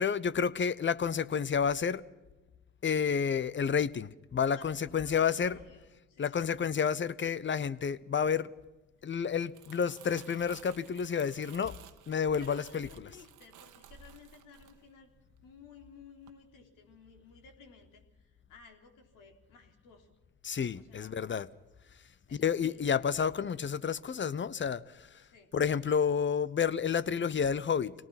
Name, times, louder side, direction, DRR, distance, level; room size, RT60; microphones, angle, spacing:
voice 1, 0.0-2.0 2.8-5.6 6.2-8.5 9.0-11.7 12.1-13.2 20.4-21.5 22.3-25.2 25.5-27.9, left 7 dB, 35° left, 0.9 m, -30 dB
voice 2, 4.4-6.5 12.4-15.1 15.4-20.2 20.7-21.2 22.3-22.9 25.3-25.5, left 5 dB, 70° left, 3.6 m, -56 dB
Crumpling crinkling, 9.4-15.7 16.0-16.3, right 10 dB, 65° right, 1.6 m, -55 dB
25.5 x 18.5 x 6.0 m
hypercardioid pair, 50°, 33 cm